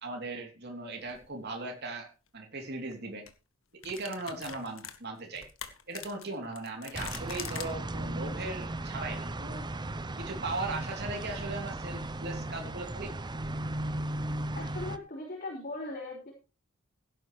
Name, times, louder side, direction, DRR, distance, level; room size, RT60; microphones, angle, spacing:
voice 1, 0.0-3.3 3.8-5.5 5.9-9.7 10.2-13.2, right 3 dB, 50° right, 2 dB, 3.2 m, -38 dB
sound 1, 1.1-1.3 2.7-2.9 3.3-3.4 3.8-7.7, left 9 dB, 70° left, 1.8 m, -43 dB
sound 2, 6.9-15.0, right 1 dB, 20° right, 0.7 m, -36 dB
voice 2, 14.5-16.3, left 2 dB, 45° left, -3 dB, 4.7 m, -39 dB
17.0 x 10.0 x 3.2 m, 0.32 s
head